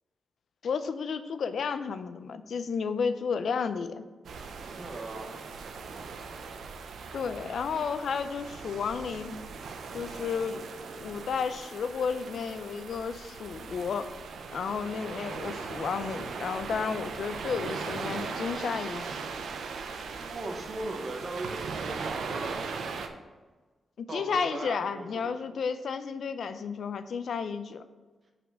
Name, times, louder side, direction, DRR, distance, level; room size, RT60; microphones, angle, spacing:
voice 1, 0.6-4.0 7.1-9.4 9.9-10.7 10.9-14.1 14.5-19.2 24.0-27.8, left 6 dB, 65° left, 11 dB, 0.4 m, -32 dB
sound 1, 4.2-23.1, right 5 dB, 80° right, 0.6 m, -39 dB
voice 2, 4.8-5.4 20.2-22.7 24.1-25.6, right 2 dB, 35° right, 2 dB, 1.0 m, -38 dB
5.5 x 4.3 x 6.2 m, 1.3 s
wide cardioid pair, 170°, 0 cm